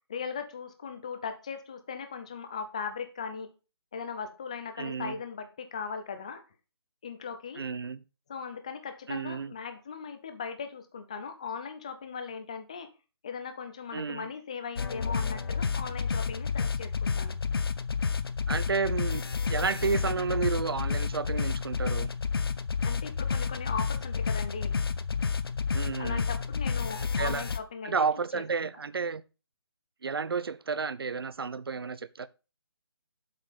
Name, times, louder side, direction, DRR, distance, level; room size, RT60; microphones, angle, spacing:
voice 1, 0.1-3.5 3.9-6.4 7.0-7.6 8.3-12.9 13.2-17.4 22.8-24.7 26.0-28.4, left 6 dB, 15° left, 0.5 m, -38 dB
voice 2, 4.8-5.1 7.6-8.0 9.1-9.5 13.9-14.3 18.5-19.2 19.5-22.1 25.7-26.2 27.2-27.4 27.8-29.2 30.0-32.3, right 5 dB, 65° right, 0.7 m, -31 dB
sound 1, 14.8-27.6, left 5 dB, 65° left, 0.8 m, -30 dB
7.7 x 5.1 x 5.5 m
hypercardioid pair, 175°, 14 cm